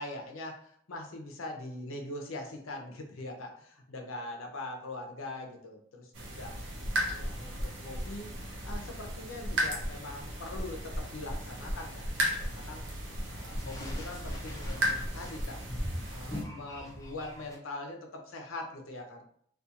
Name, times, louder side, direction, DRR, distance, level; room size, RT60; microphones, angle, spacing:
voice 1, 0.0-6.5 6.9-8.3 8.6-12.8 13.2-15.6 16.1-19.2, left 2 dB, 75° left, 2 dB, 0.5 m, -42 dB
sound 1, 6.1-16.4, equal, 60° right, 0.6 m, -35 dB
sound 2, 11.4-17.6, left 1 dB, 15° left, 0.4 m, -43 dB
2.3 x 2.3 x 2.7 m, 0.65 s
head